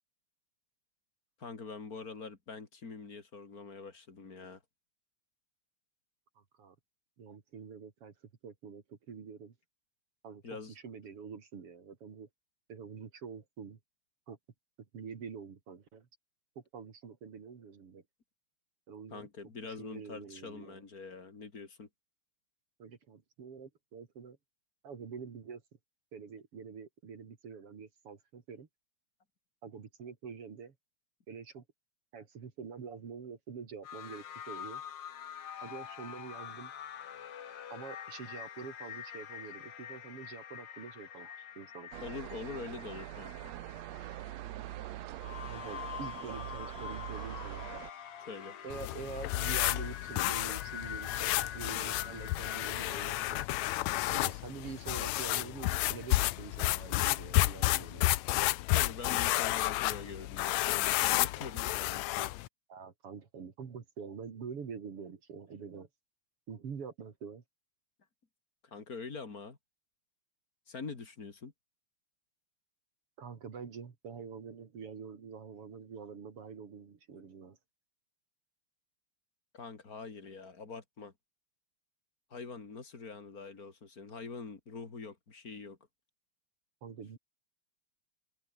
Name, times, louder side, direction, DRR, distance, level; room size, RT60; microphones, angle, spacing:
voice 1, 1.4-4.6 10.4-10.8 19.1-21.9 42.0-43.5 48.3-48.6 58.7-62.3 68.6-69.6 70.7-71.5 77.2-77.3 79.5-81.1 82.3-85.8, left 4 dB, 30° left, 2.8 m, -44 dB
voice 2, 6.4-6.7 7.2-8.1 8.4-9.5 10.2-12.3 12.7-13.8 14.3-14.4 14.9-16.1 16.7-18.0 18.9-19.3 19.8-20.8 22.8-24.4 24.8-25.6 26.1-28.7 29.6-30.7 31.3-31.6 32.1-34.8 35.6-36.7 37.7-41.9 45.5-47.7 48.6-53.4 54.1-58.1 62.7-65.9 66.5-67.4 73.2-77.6 86.8-87.2, right 6 dB, 50° right, 3.1 m, -46 dB
sound 1, 33.8-53.5, left 9 dB, 55° left, 2.4 m, -45 dB
sound 2, 41.9-47.9, right 15 dB, 70° right, 1.8 m, -43 dB
sound 3, 48.7-62.5, left 18 dB, 75° left, 1.8 m, -31 dB
omnidirectional pair, 3.5 m